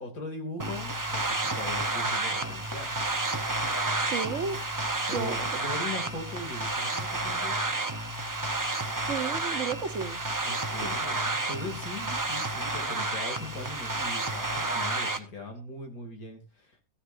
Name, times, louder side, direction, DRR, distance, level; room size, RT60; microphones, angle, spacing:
voice 1, 0.0-2.9 5.1-7.6 10.4-16.8, left 2 dB, 85° left, 4 dB, 3.2 m, -40 dB
sound 1, 0.6-15.2, right 2 dB, 20° right, 0.6 m, -30 dB
voice 2, 4.0-4.6 5.1-5.5 9.1-10.3 10.8-10.9 12.0-12.2 14.6-14.8, right 6 dB, 60° right, 9 dB, 1.3 m, -33 dB
14.5 x 10.0 x 2.7 m, 0.33 s
omnidirectional pair, 1.5 m